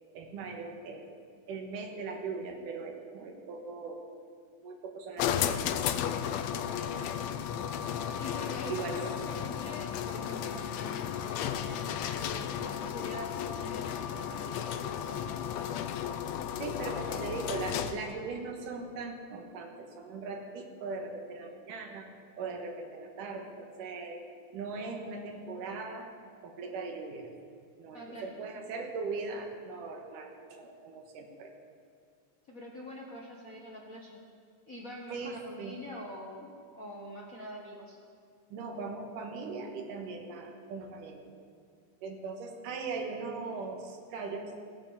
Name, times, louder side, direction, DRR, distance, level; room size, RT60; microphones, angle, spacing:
voice 1, 0.1-1.0 1.5-4.0 4.6-7.3 8.7-9.0 16.6-22.1 22.4-24.2 24.5-26.1 26.4-27.3 27.8-31.5 35.1-35.8 38.5-41.2 42.0-44.5, right 4 dB, 80° right, 3 dB, 3.0 m, -39 dB
sound 1, 5.2-18.1, left 9 dB, 80° left, 1.5 m, -34 dB
voice 2, 8.2-15.2 17.1-17.2 27.9-28.8 32.5-34.2 34.7-38.0, left 1 dB, 55° left, -3 dB, 0.9 m, -45 dB
16.0 x 9.1 x 7.1 m, 2.2 s
omnidirectional pair, 3.7 m